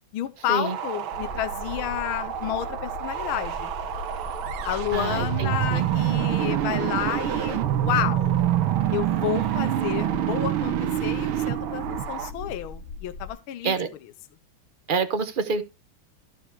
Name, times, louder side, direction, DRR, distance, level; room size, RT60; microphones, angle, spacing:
voice 1, 0.1-3.7 4.6-8.4 8.9-10.7 11.0-13.7, left 12 dB, 80° left, 1.6 m, -30 dB
sound 1, 0.6-12.3, right 9 dB, 75° right, 1.6 m, -35 dB
sound 2, 1.1-13.3, left 2 dB, 45° left, 1.3 m, -39 dB
sound 3, 4.4-12.5, right 13 dB, 90° right, 1.7 m, -26 dB
voice 2, 4.9-5.8 13.6-13.9 14.9-15.6, right 4 dB, 45° right, 0.6 m, -27 dB
13.5 x 5.0 x 4.7 m
omnidirectional pair, 2.3 m